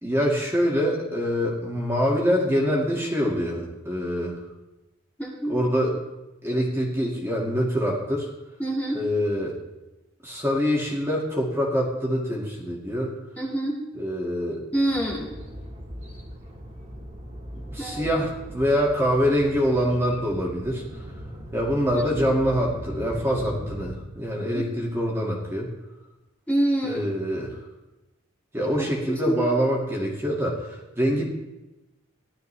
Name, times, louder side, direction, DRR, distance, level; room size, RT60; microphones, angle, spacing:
voice 1, 0.0-4.4 5.5-5.9 6.4-8.3 8.9-9.6 10.2-13.1 14.0-14.6 17.7-21.0 21.5-25.7 26.8-27.6 28.5-31.3, equal, 15° right, -3 dB, 2.1 m, -25 dB
voice 2, 5.2-5.6 8.6-9.0 13.4-13.8 14.7-15.3 17.8-18.1 21.9-22.0 24.5-24.7 26.5-27.0 28.7-28.8 29.3-29.4, right 1 dB, 5° left, -5 dB, 2.0 m, -26 dB
sound 1, 14.9-23.9, equal, 40° right, 2.2 m, -39 dB
15.5 x 12.0 x 3.4 m, 1.0 s
head